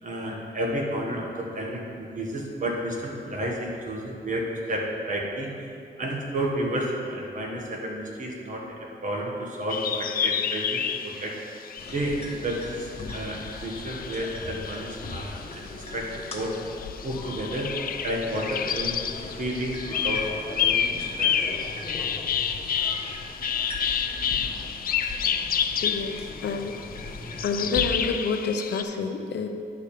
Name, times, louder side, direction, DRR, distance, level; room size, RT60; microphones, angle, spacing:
voice 1, 0.0-5.7 6.0-11.4 11.9-16.6 17.0-17.7 18.0-19.0 19.3-20.3 20.6-21.5, right 1 dB, 45° right, -1 dB, 1.4 m, -31 dB
sound 1, 9.7-15.5 15.9-28.8, left 8 dB, 55° left, 0.4 m, -30 dB
sound 2, 11.8-27.9, left 2 dB, 35° left, 1.1 m, -39 dB
voice 2, 25.8-26.8 27.4-29.5, left 4 dB, 75° left, 5 dB, 0.7 m, -28 dB
9.6 x 4.4 x 6.8 m, 2.5 s
wide cardioid pair, 160°, 18 cm